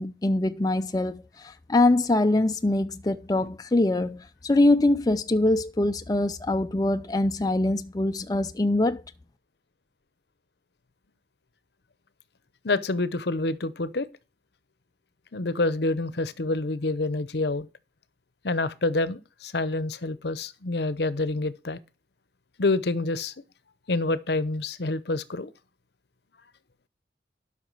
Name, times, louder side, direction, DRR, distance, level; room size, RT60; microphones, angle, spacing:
voice 1, 0.0-9.0, left 2 dB, 20° left, 0.4 m, -23 dB
voice 2, 12.6-14.1 15.3-17.7 18.4-21.8 22.6-23.3 23.9-25.5, left 2 dB, 65° left, 0.8 m, -27 dB
12.5 x 5.9 x 4.6 m
head